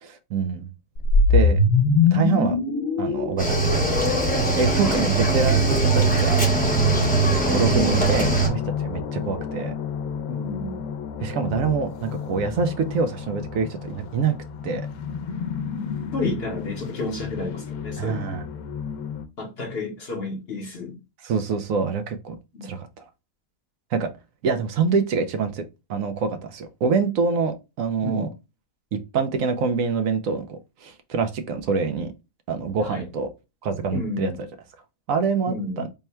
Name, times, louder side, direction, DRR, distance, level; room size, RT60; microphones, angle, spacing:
voice 1, 0.0-0.7 1.3-1.6 2.1-2.6 3.0-4.2 4.6-6.4 6.9-7.1 7.5-9.7 11.2-14.4 14.6-14.8 18.0-18.5 21.2-22.3 22.6-22.9 23.9-24.1 24.4-25.6 25.9-28.3 29.1-32.1 32.5-33.3 33.6-34.3 35.1-35.9, right 5 dB, 75° right, 1.0 m, -25 dB
sound 1, 1.0-5.3, left 4 dB, 70° left, 1.2 m, -21 dB
Cricket / Waves surf, 3.4-8.5, right 3 dB, 10° left, 0.7 m, -21 dB
sound 2, 6.5-19.3, left 7 dB, 85° left, 1.1 m, -32 dB
voice 2, 10.3-10.8 16.1-18.3 19.4-21.0 22.5-22.7 28.0-28.3 32.8-33.1 33.9-34.4 35.5-35.9, left 2 dB, 50° left, 0.9 m, -31 dB
3.4 x 2.1 x 4.3 m
omnidirectional pair, 1.5 m